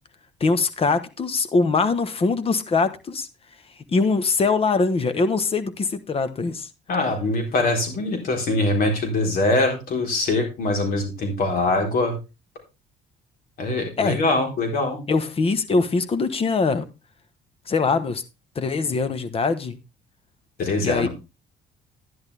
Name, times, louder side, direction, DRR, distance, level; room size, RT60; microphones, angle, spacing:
voice 1, 0.4-3.3 3.9-6.7 14.0-14.2 15.1-16.8 17.7-18.2 18.5-19.8 20.8-21.1, left 4 dB, 35° left, 1.1 m, -22 dB
voice 2, 6.9-12.1 13.6-15.0 20.6-21.1, left 2 dB, 60° left, 3.9 m, -23 dB
10.5 x 10.5 x 3.4 m
cardioid pair, 110°, 17 cm